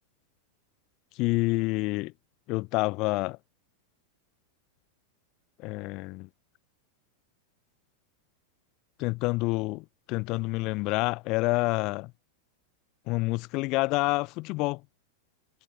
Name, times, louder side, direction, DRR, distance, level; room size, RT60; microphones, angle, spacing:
voice 1, 1.2-2.1 2.5-3.4 5.6-6.3 9.0-12.1 13.1-14.8, left 23 dB, 40° left, 2.0 m, -28 dB
figure-of-eight pair, 90°, 0 cm